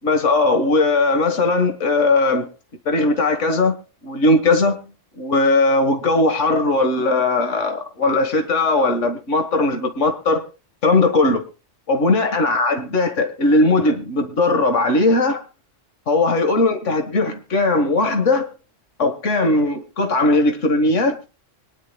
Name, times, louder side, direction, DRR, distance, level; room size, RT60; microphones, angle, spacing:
voice 1, 0.0-2.5 2.9-3.8 4.0-4.8 5.2-10.4 10.8-11.4 11.9-15.4 16.1-18.5 19.0-21.3, left 2 dB, 70° left, 7 dB, 2.0 m, -18 dB
25.0 x 10.5 x 2.3 m, 0.30 s
omnidirectional pair, 1.3 m